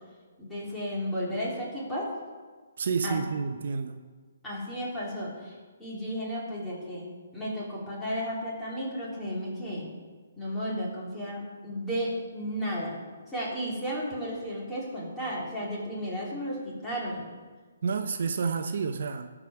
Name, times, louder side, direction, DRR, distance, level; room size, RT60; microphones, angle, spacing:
voice 1, 0.4-2.1 3.0-3.2 4.4-7.1 7.3-9.9 10.4-17.3, equal, 5° left, -7 dB, 2.9 m, -33 dB
voice 2, 2.8-4.0 17.8-19.3, right 5 dB, 60° right, 8 dB, 0.6 m, -29 dB
13.0 x 5.0 x 5.8 m, 1.4 s
hypercardioid pair, 150°, 0 cm